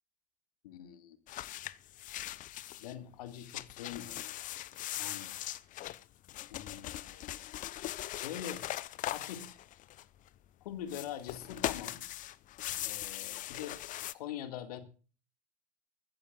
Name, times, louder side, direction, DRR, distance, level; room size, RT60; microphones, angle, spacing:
voice 1, 0.6-1.2 2.8-4.5 5.0-5.3 6.5-7.5 8.2-8.6 9.0-9.6 10.6-12.0 12.8-13.8 14.1-14.8, left 10 dB, 65° left, 9 dB, 1.9 m, -44 dB
sound 1, 1.3-2.9 3.3-10.3 10.8-14.1, left 14 dB, 40° left, 0.7 m, -40 dB
21.0 x 15.0 x 2.4 m, 0.36 s
figure-of-eight pair, 75°, 21 cm